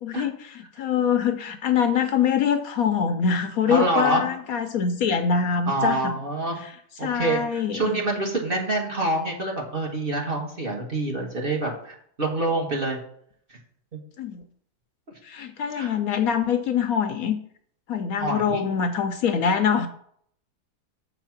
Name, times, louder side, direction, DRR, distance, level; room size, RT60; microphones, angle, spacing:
voice 1, 0.0-6.1 6.6-6.7 7.0-8.0 14.2-14.4 15.2-17.4 17.9-19.9, left 7 dB, 70° left, 7 dB, 0.9 m, -24 dB
voice 2, 3.7-4.2 5.7-6.6 7.0-13.0 15.7-15.9 18.1-18.6, right 2 dB, 35° right, -1 dB, 1.5 m, -26 dB
7.4 x 4.1 x 5.8 m, 0.65 s
omnidirectional pair, 1.8 m